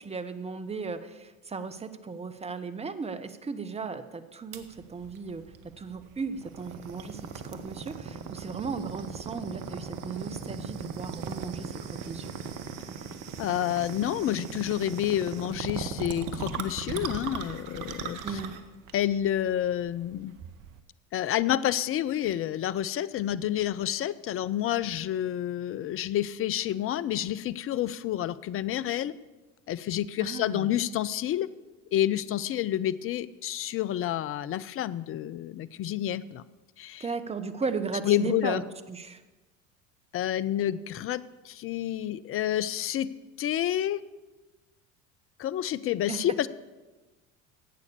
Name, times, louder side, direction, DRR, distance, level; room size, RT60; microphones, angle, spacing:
voice 1, 0.0-5.4 5.8-7.2 7.5-12.3 18.2-18.6 30.2-30.8 37.0-39.2 46.1-46.2, right 5 dB, 15° right, 11 dB, 0.9 m, -36 dB
sound 1, 4.5-20.8, right 6 dB, 50° right, 1.2 m, -39 dB
voice 2, 13.4-18.2 18.9-20.4 21.1-29.1 29.7-31.5 31.9-36.4 36.8-37.1 38.0-38.6 40.1-43.1 43.4-44.0 45.4-46.5, left 12 dB, 35° left, 16 dB, 0.5 m, -29 dB
12.0 x 8.3 x 6.8 m, 1.2 s
hypercardioid pair, 70°, 40 cm